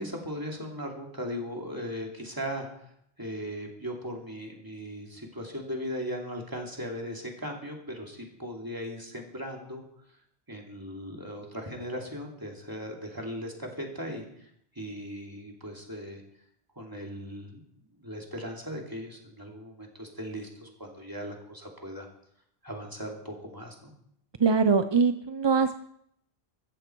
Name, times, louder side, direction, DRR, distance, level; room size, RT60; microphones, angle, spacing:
voice 1, 0.0-2.9 3.2-9.8 10.5-14.5 14.7-16.2 16.8-17.7 18.0-22.1 22.6-23.9, equal, 20° right, 0 dB, 2.8 m, -38 dB
voice 2, 24.4-25.8, right 5 dB, 35° right, 10 dB, 0.4 m, -23 dB
15.0 x 14.0 x 4.6 m, 0.71 s
omnidirectional pair, 1.1 m